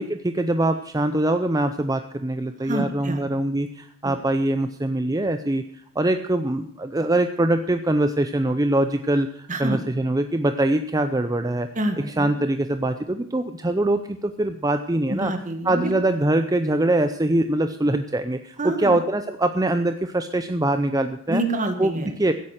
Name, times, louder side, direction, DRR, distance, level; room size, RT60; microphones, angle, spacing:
voice 1, 0.0-5.6 6.0-11.7 12.2-15.3 15.6-21.4 21.8-22.3, right 1 dB, 15° right, 9 dB, 0.5 m, -23 dB
voice 2, 2.6-3.2 4.0-4.1 9.5-9.8 11.8-12.3 15.1-15.9 18.6-18.9 21.3-22.2, right 1 dB, 35° right, 6 dB, 1.9 m, -27 dB
15.5 x 8.8 x 6.4 m, 0.67 s
head